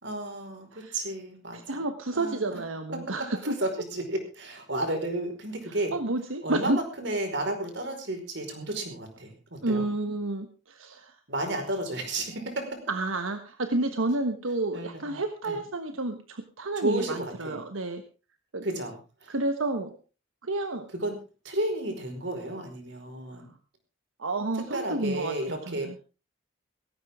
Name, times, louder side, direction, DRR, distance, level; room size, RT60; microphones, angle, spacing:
voice 1, 0.0-1.8 2.1-2.6 3.4-5.9 6.4-9.9 11.3-12.8 14.7-15.2 15.4-15.6 16.7-17.6 18.6-19.4 20.9-21.2 21.4-23.5 24.7-26.0, right 1 dB, 60° right, 5 dB, 5.0 m, -32 dB
voice 2, 1.5-3.6 5.9-6.8 9.6-11.2 12.9-18.0 18.5-18.6 19.3-20.0 20.4-20.9 24.2-25.9, right 2 dB, 80° right, 7 dB, 1.3 m, -30 dB
17.5 x 16.0 x 3.7 m, 0.33 s
head